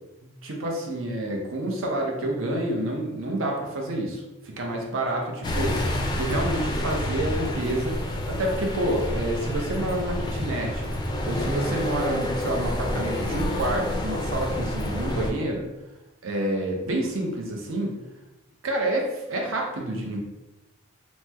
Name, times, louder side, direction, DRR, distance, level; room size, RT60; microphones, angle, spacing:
voice 1, 0.2-5.8 6.2-8.0 8.3-10.9 11.2-15.7 16.2-18.0 18.6-20.2, right 1 dB, 85° right, 0 dB, 0.7 m, -28 dB
sound 1, 5.4-15.3, left 1 dB, 20° left, 0.3 m, -28 dB
3.0 x 2.0 x 3.3 m, 1.0 s
head